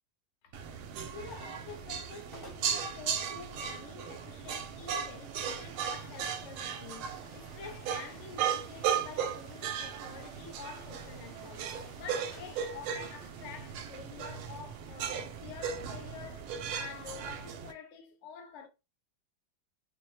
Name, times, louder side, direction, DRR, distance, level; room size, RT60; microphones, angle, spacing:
sound 1, 0.5-17.7, right 8 dB, 85° right, 1.4 m, -37 dB
voice 1, 0.9-18.7, left 6 dB, 75° left, 0.6 m, -48 dB
sound 2, 0.9-1.7 2.1-2.2 2.3-2.8 3.5-16.2, equal, 20° left, 0.6 m, -58 dB
4.5 x 2.1 x 3.1 m
omnidirectional pair, 2.3 m